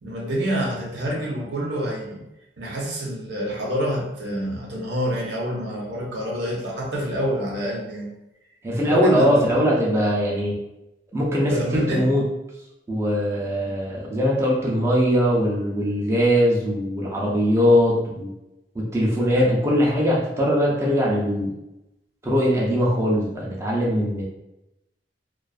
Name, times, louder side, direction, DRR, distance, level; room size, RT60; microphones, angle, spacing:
voice 1, 0.0-2.2 2.6-8.1 8.8-9.6 11.5-12.1 19.3-19.5, equal, 85° right, -3 dB, 0.7 m, -27 dB
voice 2, 8.6-10.6 11.1-12.2 12.9-18.3 18.8-21.5 22.2-24.3, equal, 15° right, -4 dB, 0.4 m, -21 dB
2.4 x 2.3 x 2.3 m, 0.92 s
head